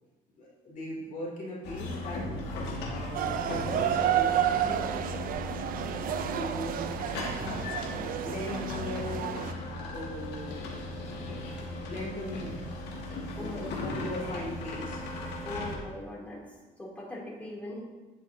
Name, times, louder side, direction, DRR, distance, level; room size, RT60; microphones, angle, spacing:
voice 1, 0.4-2.2 2.8-5.0 6.3-7.0 7.8-9.3 9.9-10.6 11.7-12.7 13.3-15.0, left 1 dB, 50° left, -4 dB, 2.7 m, -39 dB
sound 1, 1.6-15.7, left 2 dB, 85° left, 1.8 m, -37 dB
sound 2, 3.1-9.5, right 10 dB, 60° right, 0.5 m, -31 dB
voice 2, 13.4-14.0 15.4-16.4 16.8-17.8, left 1 dB, 10° left, -6 dB, 2.8 m, -40 dB
10.5 x 7.5 x 2.7 m, 1.2 s
cardioid pair, 110°, 17 cm